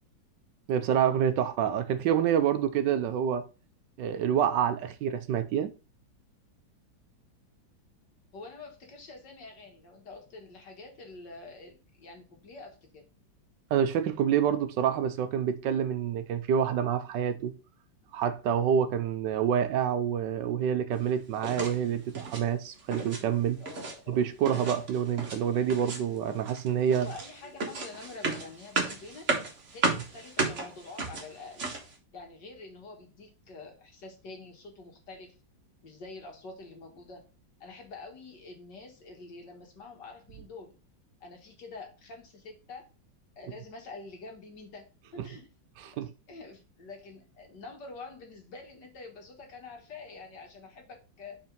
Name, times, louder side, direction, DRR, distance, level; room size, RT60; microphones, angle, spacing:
voice 1, 0.7-3.4 4.0-5.7 13.7-17.5 18.1-23.6 24.1-27.1 45.8-46.1, right 8 dB, 75° right, 1.2 m, -27 dB
voice 2, 8.3-13.2 23.6-24.2 26.9-29.3 29.7-31.7 32.1-35.4 35.8-37.2 37.6-40.7 41.2-42.9 43.4-45.5 45.9-51.4, left 3 dB, 65° left, 2.3 m, -46 dB
sound 1, 21.4-21.8 22.1-22.5 22.8-23.2 23.5-24.0 24.4-25.4 25.7-26.2 26.5-31.9, right 3 dB, 40° right, 1.6 m, -33 dB
5.4 x 4.5 x 5.2 m
omnidirectional pair, 2.1 m